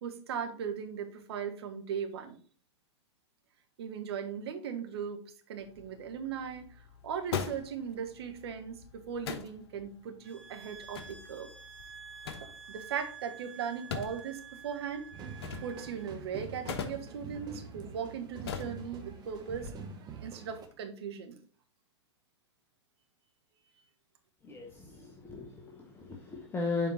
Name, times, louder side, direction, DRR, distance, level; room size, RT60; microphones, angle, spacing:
voice 1, 0.0-2.4 3.8-11.5 12.4-15.1 15.6-19.7 20.2-21.4, right 7 dB, 60° right, 6 dB, 1.4 m, -38 dB
sound 1, 5.6-19.7, left 7 dB, 60° left, 1.0 m, -44 dB
sound 2, 10.2-16.1, right 6 dB, 45° right, 2.4 m, -50 dB
sound 3, 15.1-20.7, right 5 dB, 25° right, 1.4 m, -45 dB
voice 2, 24.4-26.9, left 3 dB, 15° left, 0 dB, 1.1 m, -36 dB
7.2 x 4.5 x 4.1 m, 0.43 s
figure-of-eight pair, 100°, 15 cm